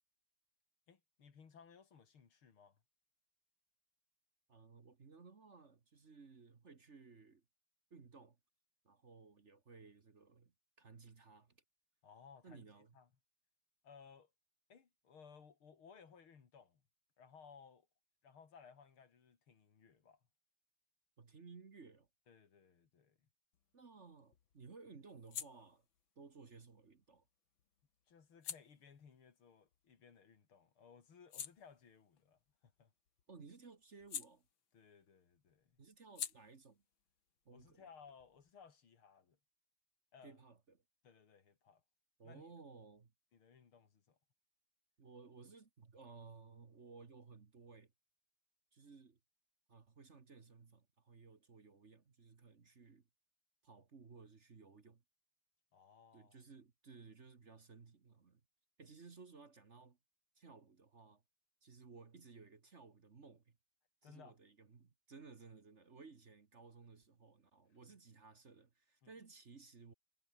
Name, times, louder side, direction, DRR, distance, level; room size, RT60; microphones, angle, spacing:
voice 1, 0.9-2.8 12.0-12.7 12.9-13.1 13.8-14.3 14.7-16.8 17.2-17.9 18.2-20.2 22.3-23.2 28.1-32.9 34.7-35.8 37.5-39.4 40.1-40.4 41.0-41.8 42.2-42.4 43.3-44.2 55.7-56.4 64.0-64.4 69.0-69.1, left 6 dB, 85° left, 3.4 m, -61 dB
voice 2, 4.5-7.4 7.9-8.4 8.8-10.5 10.8-11.6 12.4-13.0 21.2-22.1 23.7-25.9 26.1-27.2 33.3-34.5 35.8-36.8 37.4-37.8 40.2-40.8 42.2-43.1 45.0-47.9 48.7-49.2 49.7-53.1 53.6-55.0 56.1-58.4 58.8-60.0 60.3-61.2 61.6-63.6 64.0-69.9, right 4 dB, 35° right, 1.7 m, -58 dB
sound 1, 23.5-30.4 30.8-35.1 35.3-38.7, left 9 dB, 70° left, 2.2 m, -53 dB
omnidirectional pair, 2.3 m